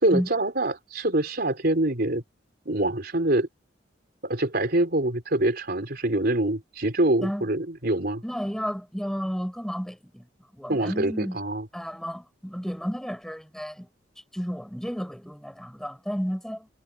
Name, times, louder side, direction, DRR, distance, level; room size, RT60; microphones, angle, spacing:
voice 1, 0.0-2.2 2.7-3.5 4.2-8.2 10.7-11.7, right 1 dB, 55° right, 4.1 m, -25 dB
voice 2, 8.2-10.3 10.5-11.4 11.7-13.9 14.3-16.7, equal, 5° left, 5.7 m, -32 dB
head